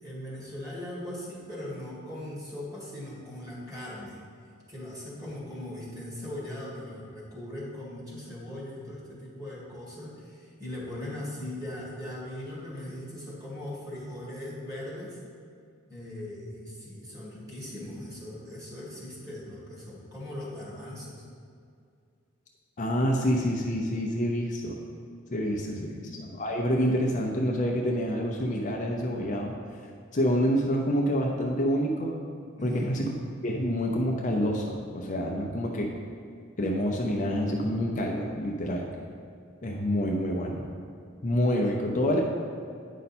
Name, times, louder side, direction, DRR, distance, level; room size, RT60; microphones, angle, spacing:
voice 1, 0.0-4.2 4.7-15.2 15.9-21.2 25.3-26.0 32.6-32.9, left 1 dB, 15° right, -6 dB, 2.0 m, -39 dB
voice 2, 22.8-24.8 25.3-25.9 26.2-29.5 30.1-32.1 32.6-33.0 33.4-35.9 36.6-38.8 39.6-40.7 41.2-42.2, equal, 40° left, 0 dB, 0.6 m, -27 dB
9.2 x 5.4 x 4.3 m, 2.3 s
head